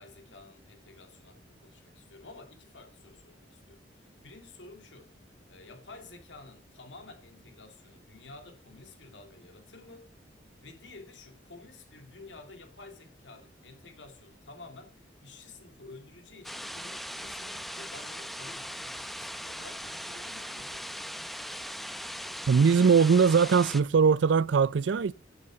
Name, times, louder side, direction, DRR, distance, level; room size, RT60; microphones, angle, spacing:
voice 1, 0.0-5.1 5.5-10.1 10.6-20.9, left 3 dB, 75° left, 2.7 m, -51 dB
sound 1, 16.4-23.8, equal, ahead, 0.6 m, -39 dB
voice 2, 22.5-25.1, right 6 dB, 70° right, 0.4 m, -21 dB
10.0 x 8.2 x 5.3 m
head